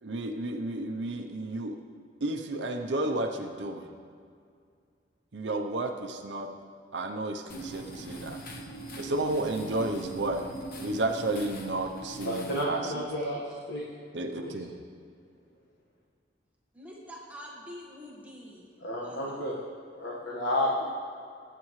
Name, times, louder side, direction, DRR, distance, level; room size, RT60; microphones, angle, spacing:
voice 1, 0.0-1.8 2.2-3.9 5.3-6.5 6.9-8.4 9.0-10.5 10.8-13.0 14.1-14.7, right 2 dB, 75° right, 4 dB, 0.8 m, -32 dB
sound 1, 7.5-12.6, right 2 dB, 55° left, 1.1 m, -41 dB
voice 2, 12.2-13.8 14.4-14.5 18.8-19.6 19.9-20.9, left 1 dB, 75° left, -4 dB, 1.6 m, -31 dB
voice 3, 16.7-18.7 19.0-19.4, equal, 10° right, -4 dB, 1.6 m, -46 dB
22.0 x 9.2 x 3.2 m, 2.3 s
head